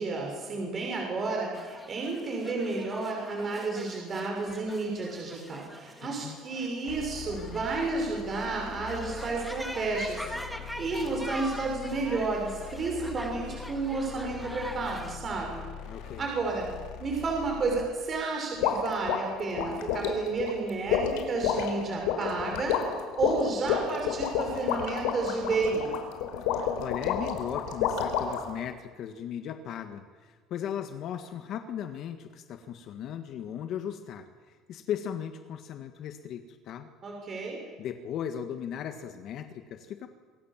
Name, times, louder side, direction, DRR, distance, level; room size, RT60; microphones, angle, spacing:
voice 1, 0.0-15.6 16.2-16.7 17.0-22.9 23.2-25.9 37.0-37.6, right 3 dB, 30° right, 0 dB, 5.9 m, -31 dB
sound 1, 1.5-15.2, equal, ahead, 2.1 m, -43 dB
sound 2, 6.9-17.9, left 9 dB, 70° left, 2.8 m, -43 dB
voice 2, 15.8-16.3 26.5-36.9 37.8-40.1, left 9 dB, 50° left, 7 dB, 1.7 m, -37 dB
sound 3, 18.6-28.5, left 8 dB, 85° left, 4.6 m, -29 dB
26.5 x 24.5 x 7.5 m, 1.5 s
cardioid pair, 145°, 0 cm